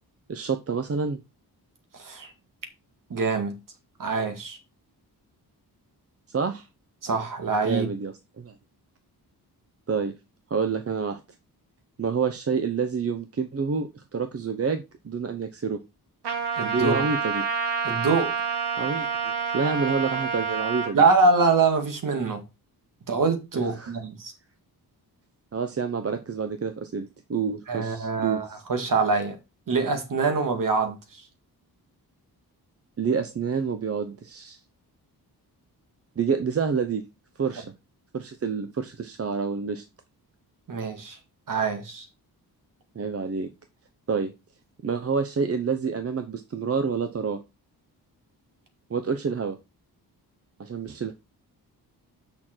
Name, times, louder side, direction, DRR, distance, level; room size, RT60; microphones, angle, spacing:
voice 1, 0.3-1.2 6.3-6.7 7.6-8.5 9.9-10.1 10.5-11.2 12.0-15.8 16.7-17.5 18.8-21.0 23.5-23.9 25.5-28.4 33.0-34.6 36.2-37.0 37.4-37.7 38.1-39.8 42.9-43.5 44.1-44.3 44.8-47.4 48.9-49.6 50.6-51.1, right 5 dB, 35° right, 0.8 m, -28 dB
voice 2, 1.9-2.3 3.1-3.6 4.0-4.6 7.0-7.9 16.6-17.1 17.8-18.3 20.9-22.4 23.1-24.3 27.7-29.4 29.7-31.2 40.7-41.2 41.5-42.1, right 4 dB, 55° right, 2.1 m, -24 dB
Trumpet, 16.2-20.9, right 5 dB, 85° right, 1.8 m, -28 dB
6.5 x 5.8 x 4.5 m
wide cardioid pair, 105°, 39 cm